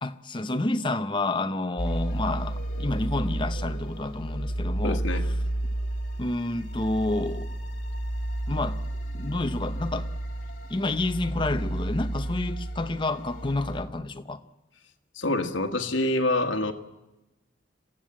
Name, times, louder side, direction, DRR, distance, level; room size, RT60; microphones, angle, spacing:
voice 1, 0.0-5.0 6.2-7.5 8.5-8.8 9.1-10.1 10.7-14.4, left 2 dB, 25° left, 0.8 m, -29 dB
sound 1, 1.8-13.8, right 1 dB, 45° left, 2.6 m, -31 dB
voice 2, 4.8-5.3 15.1-16.7, left 2 dB, 70° left, 1.7 m, -26 dB
26.5 x 15.0 x 8.8 m
head